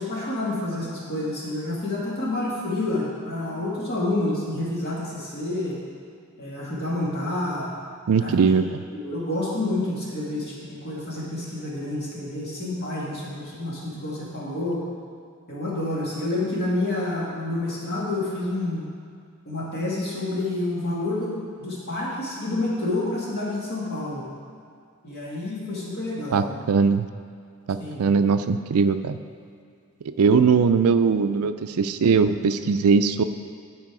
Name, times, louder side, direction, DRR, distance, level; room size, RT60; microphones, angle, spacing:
voice 1, 0.0-5.8 6.4-7.7 8.2-8.3 9.0-14.8 15.5-18.9 19.5-24.3 25.0-26.4 27.8-28.0, left 2 dB, 50° left, -5 dB, 2.1 m, -28 dB
voice 2, 8.1-8.8 26.3-27.0 27.7-29.2 30.2-33.2, right 5 dB, 85° right, 10 dB, 0.4 m, -20 dB
11.5 x 4.5 x 4.8 m, 2.3 s
head